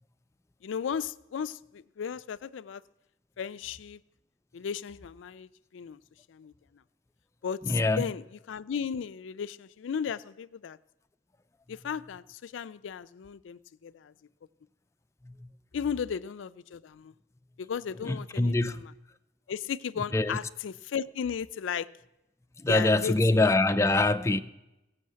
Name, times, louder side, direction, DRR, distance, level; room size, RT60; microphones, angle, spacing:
voice 1, 0.6-2.8 3.4-4.0 4.5-6.0 6.3-6.8 7.4-10.8 11.7-14.1 15.7-17.1 17.6-18.9 19.5-21.9 22.7-23.4, left 7 dB, 90° left, 0.4 m, -35 dB
voice 2, 7.7-8.0 15.3-15.4 18.1-18.8 20.1-20.4 22.6-24.4, left 2 dB, 15° left, 0.4 m, -24 dB
16.5 x 6.4 x 7.6 m
head